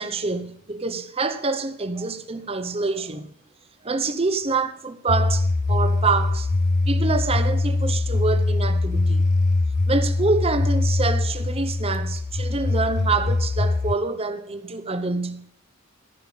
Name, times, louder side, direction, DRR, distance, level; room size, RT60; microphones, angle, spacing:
voice 1, 0.0-3.3 3.8-6.5 6.9-9.3 9.9-15.5, right 3 dB, 25° right, 0.8 m, -26 dB
sound 1, 5.1-14.0, left 2 dB, 35° left, 0.5 m, -22 dB
14.5 x 6.6 x 5.6 m
head